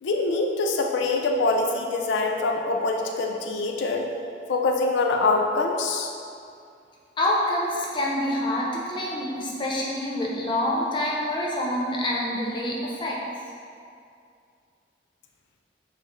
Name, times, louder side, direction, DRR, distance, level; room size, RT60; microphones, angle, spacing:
voice 1, 0.0-4.1 4.5-6.1, left 3 dB, 75° left, 2 dB, 0.4 m, -24 dB
voice 2, 7.2-13.2, left 1 dB, 25° left, -4 dB, 0.5 m, -26 dB
5.7 x 2.0 x 3.0 m, 2.4 s
head